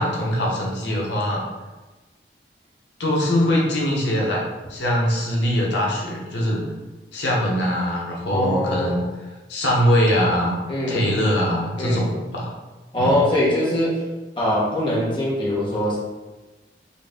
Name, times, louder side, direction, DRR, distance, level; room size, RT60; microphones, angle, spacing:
voice 1, 0.0-1.4 3.0-4.4 4.7-6.7 7.1-9.0 9.5-10.6 10.9-12.5 13.0-13.3, equal, 85° left, -3 dB, 0.8 m, -22 dB
voice 2, 8.3-8.9 10.7-11.2 11.8-12.1 12.9-14.0 14.4-16.0, left 1 dB, 25° left, -7 dB, 0.9 m, -22 dB
3.9 x 2.5 x 3.5 m, 1.2 s
head